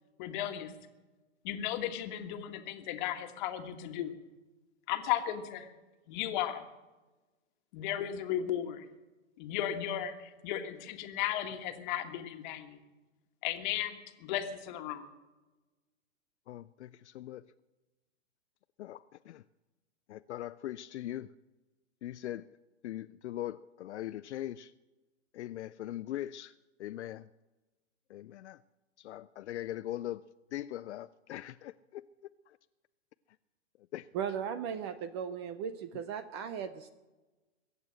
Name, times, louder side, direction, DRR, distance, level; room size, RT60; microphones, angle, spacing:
voice 1, 0.2-0.7 1.4-4.1 4.9-5.7 6.1-6.6 7.7-8.8 9.4-12.8 13.4-15.1, left 11 dB, 40° left, 6 dB, 1.7 m, -35 dB
voice 2, 16.5-17.5 18.8-19.4 20.1-21.3 22.0-22.5 22.8-24.7 25.3-27.3 28.1-28.6 29.0-30.2 30.5-32.0 32.5-32.6 33.9-34.1, left 13 dB, 65° left, 13 dB, 0.5 m, -41 dB
voice 3, 34.1-36.9, right 8 dB, 20° right, 13 dB, 0.5 m, -37 dB
22.5 x 8.4 x 7.7 m, 1.2 s
hypercardioid pair, 145°, 37 cm